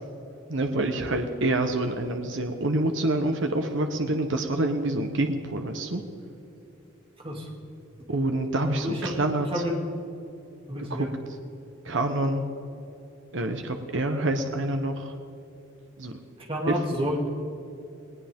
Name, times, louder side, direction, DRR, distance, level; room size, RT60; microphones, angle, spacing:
voice 1, 0.5-6.0 8.1-9.7 10.9-11.1 11.8-12.4 13.3-15.1 16.0-16.1 16.6-17.1, right 2 dB, 65° right, 5 dB, 1.2 m, -27 dB
voice 2, 8.7-9.2 9.5-9.8 10.7-11.1 16.5-17.3, equal, 25° right, -1 dB, 2.9 m, -29 dB
19.5 x 19.0 x 3.8 m, 2.8 s
head